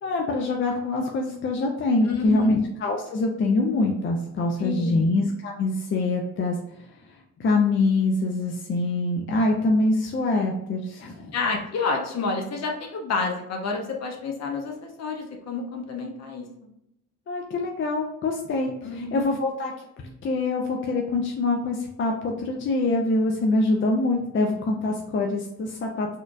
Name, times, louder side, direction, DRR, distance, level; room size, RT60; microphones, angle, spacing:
voice 1, 0.0-6.6 7.4-11.3 17.3-19.8 20.2-26.1, left 2 dB, 40° left, 1 dB, 0.5 m, -24 dB
voice 2, 2.1-2.6 4.6-5.1 11.3-16.4 18.8-19.3, left 4 dB, 60° left, 2 dB, 0.9 m, -29 dB
4.2 x 2.5 x 2.5 m, 0.83 s
cardioid pair, 90°, 30 cm